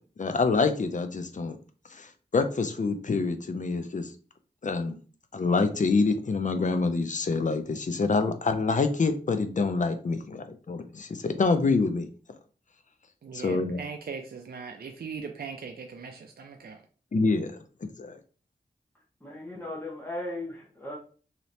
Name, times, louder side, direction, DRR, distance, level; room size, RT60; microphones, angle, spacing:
voice 1, 0.2-1.6 2.0-2.1 2.3-4.1 4.6-5.0 5.3-12.1 13.3-13.8 17.1-17.5 17.8-18.2, left 4 dB, 45° left, 8 dB, 0.5 m, -26 dB
voice 2, 13.2-16.8, right 5 dB, 65° right, 4 dB, 0.4 m, -39 dB
voice 3, 19.2-21.0, left 1 dB, 10° left, -3 dB, 1.2 m, -37 dB
3.1 x 2.8 x 2.7 m, 0.40 s
wide cardioid pair, 65°, 18 cm